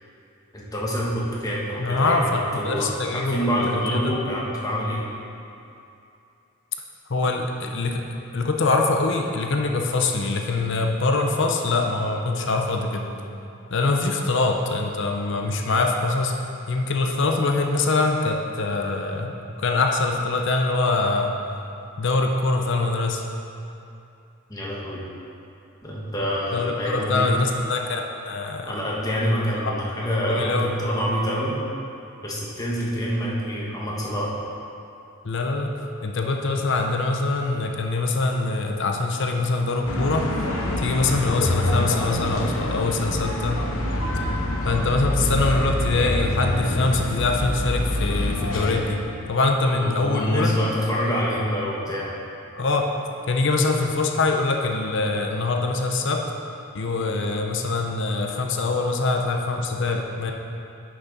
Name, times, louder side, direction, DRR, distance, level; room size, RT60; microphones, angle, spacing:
voice 1, 0.5-2.2 2.5-2.9 3.1-5.0 24.5-25.0 25.8-27.3 28.6-31.6 32.2-34.3 49.7-52.1, equal, 15° left, -6 dB, 1.3 m, -26 dB
voice 2, 1.8-4.2 7.1-8.0 8.3-13.1 13.7-16.4 16.7-21.3 22.0-23.2 26.5-28.8 30.3-30.7 35.2-35.7 36.0-40.3 40.8-43.6 44.7-50.6 52.6-52.9 53.3-56.3 56.7-60.3, left 3 dB, 55° left, 3 dB, 0.6 m, -24 dB
sound 1, 39.9-48.8, left 1 dB, 80° left, 1.0 m, -26 dB
10.0 x 6.3 x 4.0 m, 2.7 s
head